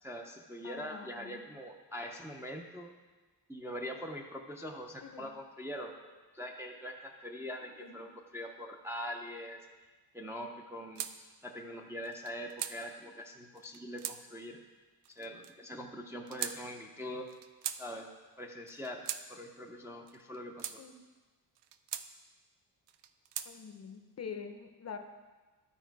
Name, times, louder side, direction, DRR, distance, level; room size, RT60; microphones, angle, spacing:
voice 1, 0.0-2.9 3.5-9.6 10.1-14.6 15.1-17.3 17.7-18.1 18.4-20.8, equal, 5° right, 0 dB, 0.4 m, -43 dB
voice 2, 0.6-1.4 5.0-5.3 7.8-8.0 20.8-20.9 23.4-25.0, left 6 dB, 40° left, 6 dB, 0.5 m, -45 dB
sound 1, 10.9-11.1 12.0-12.8 13.6-14.2 15.0-15.5 16.3-16.6 17.3-17.8 18.7-19.2 20.1-20.8 21.5-22.1 22.9-23.5, right 10 dB, 90° right, 0.5 m, -40 dB
12.0 x 4.4 x 4.6 m, 1.3 s
wide cardioid pair, 175°, 41 cm